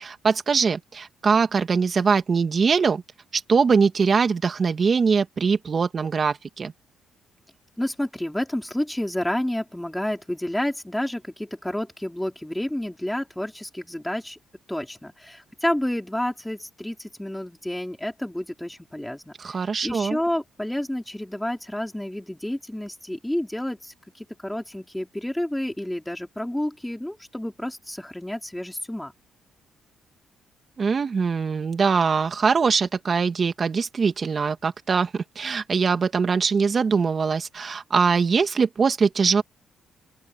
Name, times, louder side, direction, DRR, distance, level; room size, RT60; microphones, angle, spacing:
voice 1, 0.0-3.0 3.3-6.7 19.4-20.2 30.8-39.4, right 5 dB, 40° right, 2.1 m, -22 dB
voice 2, 7.8-14.4 14.7-29.1, left 1 dB, 5° left, 5.0 m, -30 dB
open air
cardioid pair, 90°, 0 cm